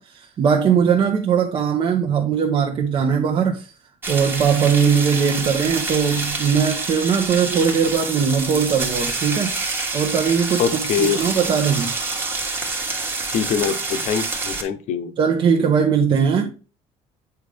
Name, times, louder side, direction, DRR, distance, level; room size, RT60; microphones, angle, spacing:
voice 1, 0.0-3.7 4.1-9.5 9.9-11.9 12.7-13.0 15.2-16.5, right 7 dB, 35° right, 0.9 m, -20 dB
sound 1, 4.0-14.6, right 3 dB, 15° right, 1.3 m, -27 dB
voice 2, 10.6-11.2 13.3-15.1, left 8 dB, 60° left, 1.0 m, -23 dB
8.1 x 5.0 x 3.4 m
cardioid pair, 170°, 13 cm